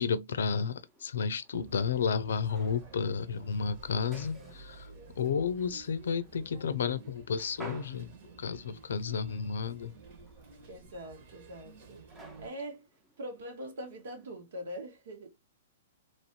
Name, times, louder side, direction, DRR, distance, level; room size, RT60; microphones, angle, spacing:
voice 1, 0.0-4.9 5.2-8.1 8.4-9.9, left 6 dB, 80° left, 0.5 m, -32 dB
sound 1, 0.5-14.3, right 2 dB, 15° right, 1.0 m, -56 dB
sound 2, 1.5-12.5, right 3 dB, 55° right, 1.6 m, -52 dB
voice 2, 4.1-4.5 4.9-5.0 10.7-12.9 13.2-15.4, equal, 70° right, 1.7 m, -43 dB
3.1 x 2.7 x 2.8 m
hypercardioid pair, 130°, 0 cm